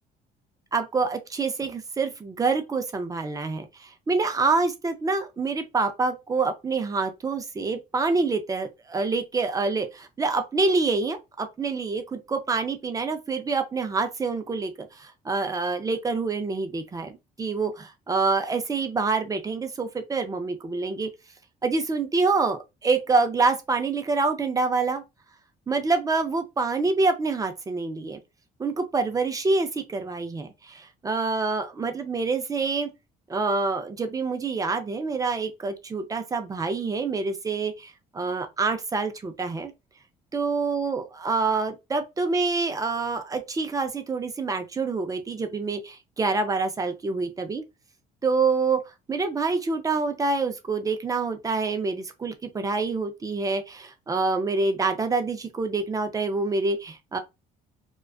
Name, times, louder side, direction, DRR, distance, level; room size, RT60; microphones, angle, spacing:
voice 1, 0.7-17.1 17.4-21.1 21.6-25.0 25.7-28.2 28.6-32.9 33.3-39.7 40.3-47.6 48.2-48.8 49.1-57.2, right 4 dB, 20° right, 0.4 m, -26 dB
2.4 x 2.2 x 2.3 m
cardioid pair, 110°, 17 cm